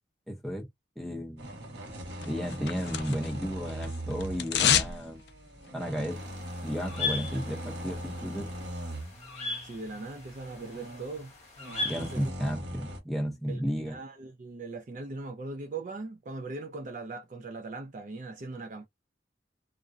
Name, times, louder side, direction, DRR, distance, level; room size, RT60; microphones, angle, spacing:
voice 1, 0.3-0.7 1.0-1.5 2.2-5.2 5.7-6.2 6.6-8.5 11.8-14.0, equal, ahead, 0.7 m, -33 dB
sound 1, 1.4-13.0, equal, 75° right, 1.1 m, -40 dB
sound 2, 2.2-3.4 3.7-5.0 5.3-5.4, left 9 dB, 70° left, 0.4 m, -27 dB
sound 3, 6.1-12.3, left 3 dB, 40° left, 0.9 m, -39 dB
voice 2, 9.6-11.3 12.0-12.3 13.5-18.9, right 3 dB, 45° right, 0.4 m, -40 dB
2.4 x 2.1 x 2.5 m
head